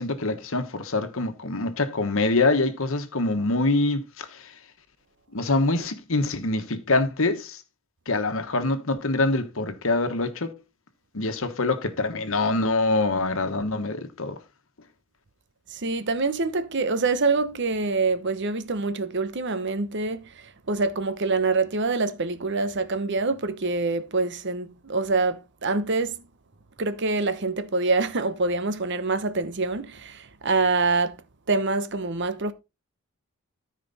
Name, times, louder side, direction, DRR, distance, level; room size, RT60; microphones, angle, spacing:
voice 1, 0.0-4.5 5.3-7.6 8.1-10.5 11.1-14.4, left 2 dB, 65° left, 1.3 m, -25 dB
voice 2, 15.7-26.2 26.8-31.2 31.5-32.5, right 3 dB, 55° right, 0.9 m, -25 dB
13.5 x 5.1 x 4.1 m
head